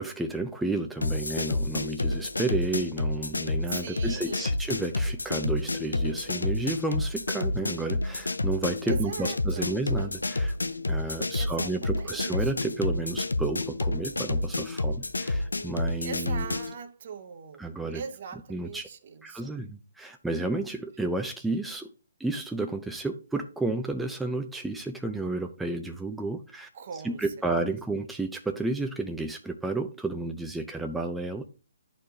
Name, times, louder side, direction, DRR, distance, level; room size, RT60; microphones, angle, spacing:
voice 1, 0.0-10.6 10.9-16.5 17.6-18.0 18.5-18.9 19.2-21.9 22.2-26.7 27.0-31.4, right 2 dB, 5° right, 0.4 m, -32 dB
sound 1, 1.0-16.7, left 2 dB, 85° left, 0.5 m, -29 dB
voice 2, 3.7-4.6 8.8-9.7 11.0-12.5 16.0-17.7 17.9-19.6 26.7-27.2, right 6 dB, 45° right, 0.9 m, -41 dB
11.0 x 4.3 x 2.8 m
figure-of-eight pair, 135°, 0 cm